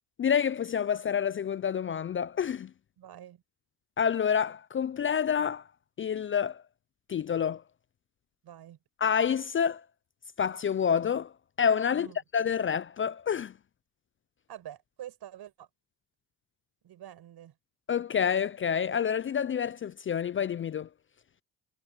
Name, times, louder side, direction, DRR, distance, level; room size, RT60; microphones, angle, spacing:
voice 1, 0.2-2.7 4.0-5.6 6.0-6.6 7.1-7.6 9.0-9.8 10.4-11.3 11.6-12.1 12.3-13.5 17.9-20.9, left 7 dB, 35° left, 0.4 m, -28 dB
voice 2, 3.0-3.4 8.4-8.8 11.9-12.2 14.5-15.7 16.8-17.5, right 11 dB, 70° right, 6.5 m, -46 dB
cardioid pair, 80°, 40 cm